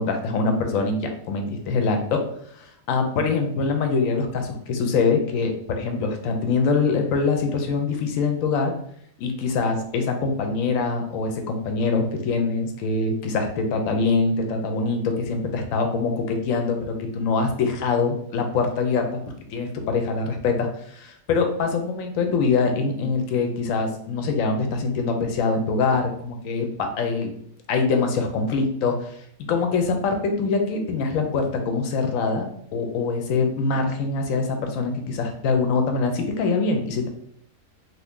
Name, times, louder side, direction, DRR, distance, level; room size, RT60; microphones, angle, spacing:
voice 1, 0.0-2.2 2.5-8.7 9.2-19.2 19.5-27.3 27.7-29.1 29.5-37.1, left 4 dB, 75° left, 4 dB, 1.0 m, -24 dB
2.7 x 2.5 x 3.5 m, 0.68 s
omnidirectional pair, 1.5 m